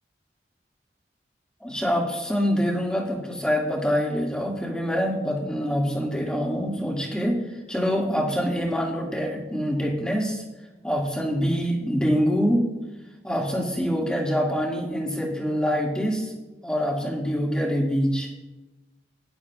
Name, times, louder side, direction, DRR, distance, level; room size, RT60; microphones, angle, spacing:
voice 1, 1.6-7.4 7.7-10.4 10.8-12.6 13.2-16.3 16.6-18.3, equal, 5° left, -2 dB, 2.1 m, -25 dB
18.5 x 11.5 x 2.4 m, 1.1 s
head